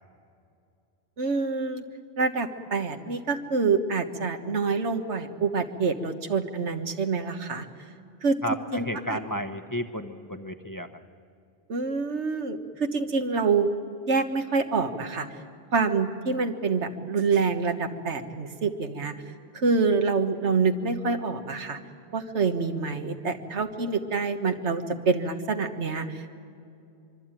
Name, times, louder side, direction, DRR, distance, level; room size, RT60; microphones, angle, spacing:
voice 1, 1.2-1.8 2.2-7.6 8.2-8.4 8.7-9.2 11.7-13.7 14.1-15.3 15.7-19.1 19.5-21.8 22.1-26.4, right 4 dB, 80° right, 7 dB, 1.7 m, -26 dB
voice 2, 8.4-10.9, equal, 20° left, 6 dB, 0.9 m, -32 dB
25.0 x 24.0 x 9.0 m, 2.5 s
omnidirectional pair, 1.2 m